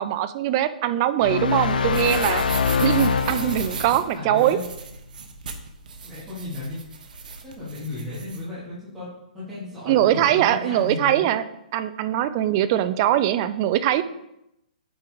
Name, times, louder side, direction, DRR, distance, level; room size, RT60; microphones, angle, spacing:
voice 1, 0.0-2.4 2.8-4.6 9.9-11.4 11.7-14.0, right 12 dB, 35° right, 13 dB, 0.4 m, -22 dB
sound 1, 1.2-4.0, left 6 dB, 80° left, 0.6 m, -24 dB
sound 2, 1.3-8.4, right 4 dB, 70° right, 1.0 m, -37 dB
voice 2, 3.8-4.6 6.0-6.8 7.4-11.3, left 2 dB, 10° right, -12 dB, 2.5 m, -35 dB
8.6 x 4.5 x 3.9 m, 0.84 s
hypercardioid pair, 150°, 5 cm